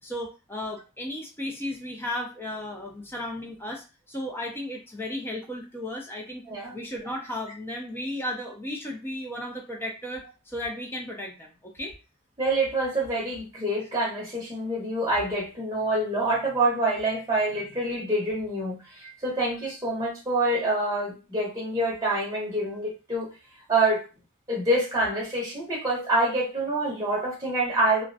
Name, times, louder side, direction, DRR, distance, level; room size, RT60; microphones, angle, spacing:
voice 1, 0.0-6.5 6.7-11.9, left 1 dB, 10° left, 0 dB, 0.3 m, -35 dB
voice 2, 12.4-23.3 23.7-24.0 24.5-28.0, right 2 dB, 15° right, -4 dB, 0.7 m, -26 dB
2.3 x 2.0 x 2.5 m, 0.31 s
head